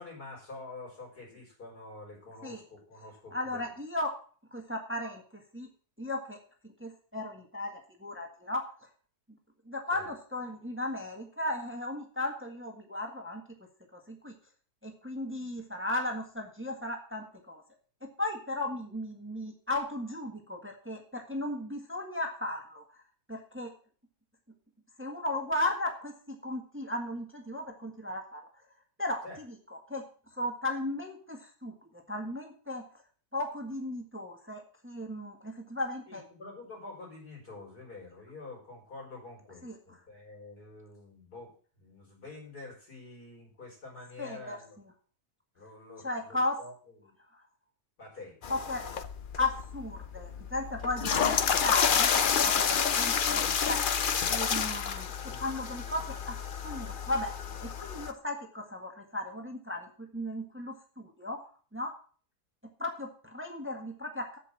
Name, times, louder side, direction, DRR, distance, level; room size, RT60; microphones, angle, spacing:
voice 1, 0.0-3.6 9.9-10.1 29.2-29.4 36.1-41.5 41.8-44.8 45.6-47.1 48.0-48.5 55.2-55.5, left 2 dB, 85° left, -2 dB, 5.6 m, -47 dB
voice 2, 3.3-4.1 4.5-5.7 6.0-6.4 6.6-8.6 9.7-13.4 14.1-14.3 14.8-17.6 18.2-22.8 23.3-23.7 25.0-28.4 29.0-29.5 29.9-30.0 30.4-31.7 32.1-32.8 33.3-36.2 39.6-39.8 44.2-44.6 46.0-46.6 48.5-48.8 49.4-54.0 54.3-55.1 55.4-56.4 56.6-57.3 57.6-61.4 61.7-61.9 62.8-64.4, left 1 dB, 10° right, 3 dB, 1.6 m, -35 dB
sound 1, 48.4-58.1, left 7 dB, 50° left, 0.6 m, -29 dB
8.3 x 7.8 x 7.2 m, 0.43 s
omnidirectional pair, 1.6 m